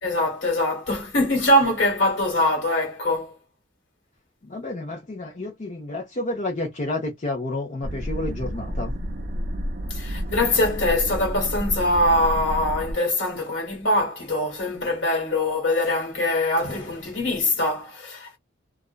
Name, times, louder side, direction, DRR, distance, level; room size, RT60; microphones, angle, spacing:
voice 1, 0.0-3.3 9.9-18.4, left 1 dB, 65° left, 1.3 m, -23 dB
voice 2, 4.5-8.9, left 2 dB, 40° left, 0.6 m, -30 dB
sound 1, 7.8-12.9, equal, 45° right, 0.5 m, -30 dB
2.4 x 2.1 x 2.4 m
head